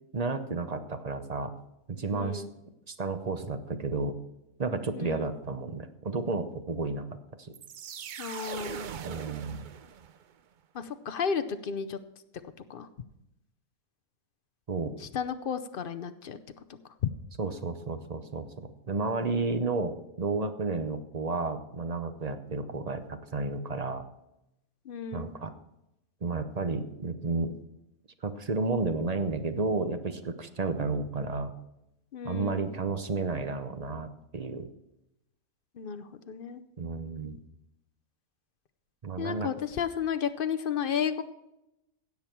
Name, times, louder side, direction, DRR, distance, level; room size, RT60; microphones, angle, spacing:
voice 1, 0.1-1.5 1.9-2.4 2.9-4.2 4.6-7.1 7.4-7.5 9.0-9.7 14.7-14.9 17.4-18.5 18.9-24.0 25.1-25.5 26.2-27.6 28.2-31.5 32.2-34.7 36.8-37.4 39.0-39.5, right 3 dB, 35° right, 9 dB, 0.7 m, -32 dB
voice 2, 2.1-2.5 4.9-5.3 8.2-8.9 10.7-12.0 12.7-12.9 15.0-16.4 17.0-17.1 24.8-25.4 32.1-32.7 35.8-36.6 39.2-41.2, left 7 dB, 50° left, 10 dB, 0.7 m, -33 dB
sound 1, 7.5-10.3, right 8 dB, 70° right, 0.4 m, -41 dB
16.5 x 7.2 x 4.5 m, 0.89 s
omnidirectional pair, 1.5 m